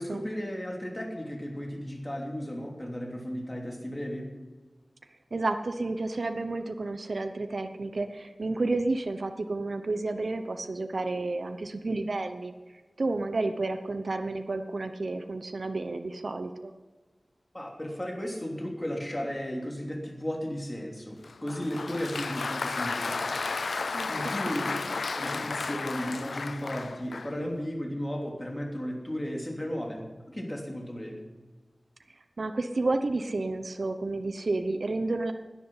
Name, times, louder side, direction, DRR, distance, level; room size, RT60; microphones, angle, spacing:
voice 1, 0.0-4.3 17.5-23.4 23.7-24.8 25.1-31.2, equal, 20° left, 0 dB, 3.2 m, -35 dB
voice 2, 5.3-12.5 13.0-16.7 23.9-24.6 32.4-35.3, right 2 dB, 65° right, 7 dB, 0.9 m, -31 dB
Applause, 21.2-27.4, left 4 dB, 90° left, 0.4 m, -33 dB
17.0 x 10.5 x 5.8 m, 1.3 s
wide cardioid pair, 75°, 0 cm